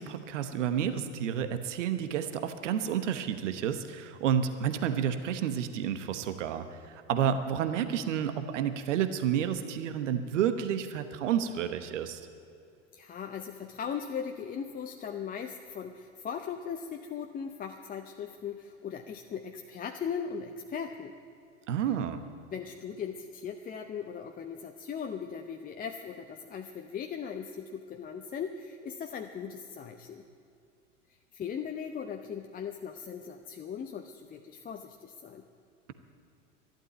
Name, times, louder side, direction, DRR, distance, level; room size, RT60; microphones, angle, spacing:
voice 1, 0.0-12.2 21.7-22.2, right 8 dB, 70° right, 10 dB, 1.1 m, -30 dB
voice 2, 12.9-21.1 22.5-30.2 31.3-35.4, left 7 dB, 25° left, 4 dB, 0.7 m, -38 dB
12.0 x 11.5 x 9.1 m, 2.5 s
hypercardioid pair, 90°, 38 cm